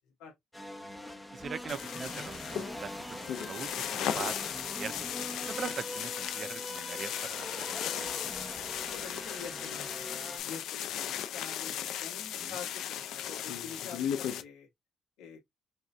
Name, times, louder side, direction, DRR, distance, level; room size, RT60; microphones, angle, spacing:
sound 1, 0.5-10.4, left 1 dB, 5° left, 0.9 m, -42 dB
voice 1, 1.3-4.4 4.7-5.1 5.5-8.1 12.4-12.6, right 6 dB, 45° right, 0.4 m, -42 dB
sound 2, 1.7-14.4, left 10 dB, 75° left, 0.6 m, -37 dB
voice 2, 8.9-9.9 10.1-14.7 15.2-15.4, left 6 dB, 90° left, 1.7 m, -46 dB
5.3 x 2.7 x 2.2 m
cardioid pair, 95°, 0 cm